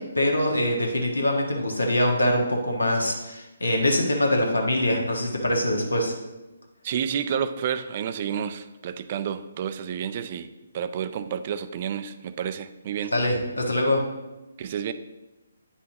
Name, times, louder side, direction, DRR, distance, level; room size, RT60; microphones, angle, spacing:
voice 1, 0.0-6.2 13.1-14.0, left 1 dB, 80° left, 1 dB, 1.4 m, -24 dB
voice 2, 6.8-10.5 10.7-13.1 14.6-14.9, right 8 dB, 35° right, 11 dB, 0.4 m, -30 dB
9.1 x 5.7 x 2.8 m, 1.0 s
figure-of-eight pair, 140°, 0 cm